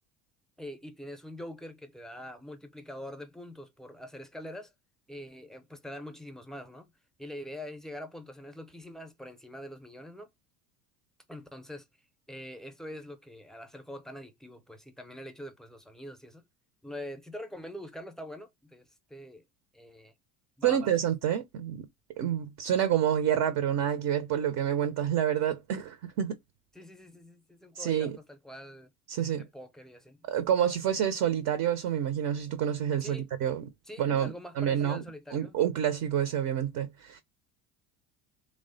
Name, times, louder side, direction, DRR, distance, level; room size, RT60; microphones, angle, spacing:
voice 1, 0.6-4.7 5.1-6.9 7.2-10.3 11.3-11.9 12.3-16.4 16.8-19.4 19.7-20.1 20.6-20.8 26.7-28.9 29.3-30.3 33.0-33.3 33.8-35.6, left 1 dB, ahead, 0.5 m, -44 dB
voice 2, 20.6-21.8 22.2-26.4 27.8-28.2 29.1-29.5 30.3-33.7 34.0-34.3 34.6-35.0 35.3-37.2, right 10 dB, 50° right, 0.5 m, -28 dB
3.1 x 2.1 x 2.5 m
hypercardioid pair, 70°, 45 cm